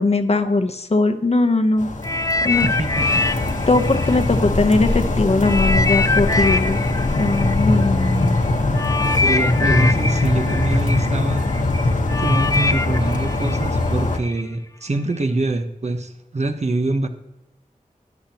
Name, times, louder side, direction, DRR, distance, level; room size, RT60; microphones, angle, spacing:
voice 1, 0.0-1.9 2.4-2.7 3.7-6.8 7.2-8.4, left 3 dB, 50° left, 7 dB, 0.9 m, -19 dB
sound 1, 1.8-14.2, left 2 dB, 65° left, 1.3 m, -21 dB
sound 2, 2.0-5.0 5.4-14.4 15.1-15.3, left 3 dB, 25° left, 0.7 m, -24 dB
voice 2, 2.5-3.3 9.0-11.4 12.2-17.1, right 2 dB, 50° right, 6 dB, 1.1 m, -25 dB
13.5 x 10.5 x 3.0 m, 0.91 s
wide cardioid pair, 80°, 14 cm